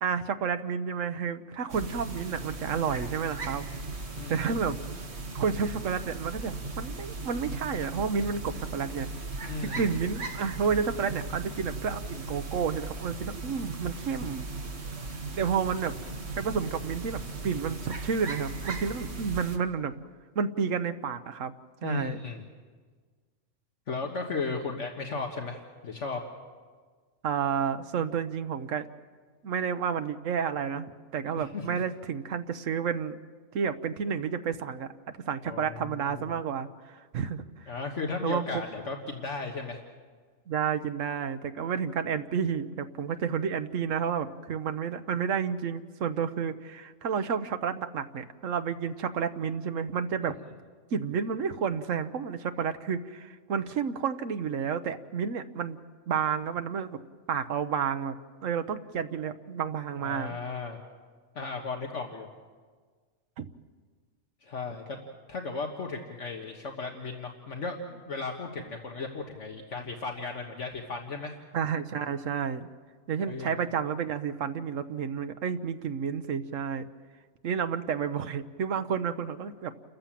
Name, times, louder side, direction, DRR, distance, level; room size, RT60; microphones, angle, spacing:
voice 1, 0.0-3.7 4.3-4.8 5.3-9.1 9.6-14.5 15.3-15.9 16.4-19.9 20.3-21.5 21.8-22.2 27.2-28.9 29.4-33.2 33.5-34.9 35.3-37.7 38.2-38.5 40.5-50.4 50.9-55.8 56.1-57.0 57.3-58.2 58.4-60.4 63.4-63.5 71.5-72.7 73.1-76.9 77.4-79.7, right 6 dB, 80° right, 9 dB, 1.3 m, -30 dB
sound 1, 1.7-19.6, right 3 dB, 55° right, 1.8 m, -38 dB
voice 2, 4.1-4.7 9.5-9.9 21.8-22.4 23.9-26.2 31.4-31.8 35.5-36.3 37.7-39.8 60.0-60.8 61.4-62.3 64.4-65.0 65.3-71.4 73.2-73.5, left 4 dB, 65° left, 1 dB, 1.8 m, -35 dB
29.0 x 14.5 x 7.5 m, 1.5 s
omnidirectional pair, 1.3 m